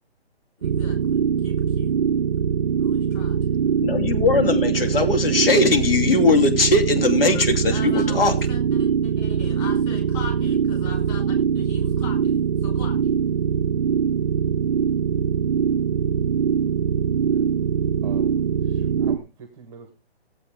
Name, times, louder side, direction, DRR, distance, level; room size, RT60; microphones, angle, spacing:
voice 1, 0.6-1.9 2.8-3.6 7.0-13.0, left 4 dB, 20° left, 1 dB, 3.5 m, -40 dB
sound 1, 0.6-19.2, right 7 dB, 45° right, 0.7 m, -22 dB
voice 2, 3.8-8.3, left 3 dB, 60° left, 6 dB, 3.0 m, -19 dB
voice 3, 18.0-18.3 18.6-19.9, right 7 dB, 10° right, 4 dB, 1.1 m, -43 dB
16.5 x 8.4 x 3.5 m, 0.29 s
hypercardioid pair, 160°, 32 cm